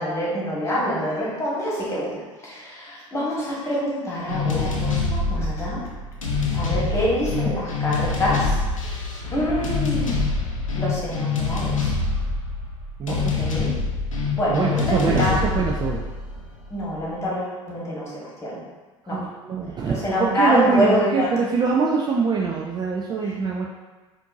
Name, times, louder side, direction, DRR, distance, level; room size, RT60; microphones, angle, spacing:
voice 1, 0.0-5.8 6.5-8.6 9.3-10.2 10.7-12.0 13.1-13.7 14.4-15.4 16.7-18.6 19.1-19.2 19.8-21.3 23.2-23.3, equal, 15° left, -6 dB, 1.4 m, -26 dB
sound 1, 4.3-17.0, left 4 dB, 90° left, 0.5 m, -25 dB
voice 2, 13.0-13.3 14.5-16.0 19.0-23.7, right 5 dB, 25° right, -2 dB, 0.4 m, -24 dB
4.3 x 2.5 x 2.6 m, 1.2 s
figure-of-eight pair, 70°, 16 cm